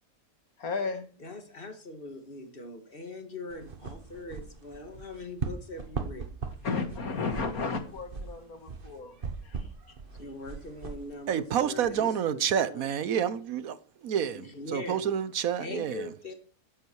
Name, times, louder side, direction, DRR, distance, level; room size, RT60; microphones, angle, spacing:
voice 1, 0.6-1.1 6.6-9.2 9.4-9.7, left 4 dB, 75° left, 2.2 m, -33 dB
voice 2, 1.2-6.3 10.2-13.0 14.3-15.1 15.6-16.3, left 2 dB, 40° left, 2.2 m, -42 dB
sound 1, 3.5-12.0, right 5 dB, 40° right, 1.3 m, -40 dB
voice 3, 11.3-13.8 14.0-14.4 14.7-16.0, right 9 dB, 70° right, 1.2 m, -28 dB
14.0 x 10.5 x 4.7 m
omnidirectional pair, 1.6 m